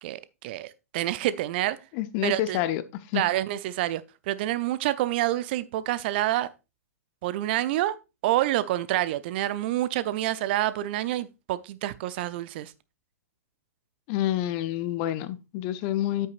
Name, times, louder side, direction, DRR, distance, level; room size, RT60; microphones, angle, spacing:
voice 1, 0.0-1.8 2.2-2.6 3.1-6.5 7.2-8.0 8.2-12.7, right 14 dB, 40° right, 0.6 m, -27 dB
voice 2, 1.9-2.8 3.1-3.2 14.1-16.3, left 13 dB, 35° left, 0.8 m, -28 dB
9.4 x 8.3 x 2.5 m
figure-of-eight pair, 110°, 9 cm